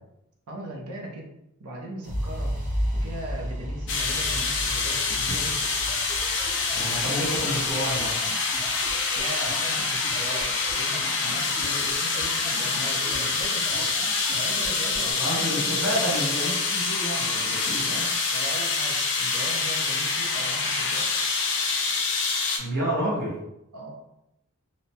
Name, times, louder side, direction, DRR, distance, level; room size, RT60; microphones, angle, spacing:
voice 1, 0.5-1.3 1.6-2.6 2.9-5.7 9.2-13.9 14.3-16.2 18.3-21.1 23.7-24.0, right 1 dB, 75° right, -1 dB, 0.6 m, -38 dB
sound 1, 2.0-10.0, equal, 35° right, 1.4 m, -33 dB
sound 2, 3.9-22.6, left 4 dB, 55° left, 0.5 m, -26 dB
sound 3, 5.8-15.1, equal, 10° left, 0.5 m, -40 dB
voice 2, 6.7-8.1 15.0-18.1 22.6-23.3, right 1 dB, 50° right, -4 dB, 1.0 m, -29 dB
2.8 x 2.1 x 2.7 m, 0.85 s
head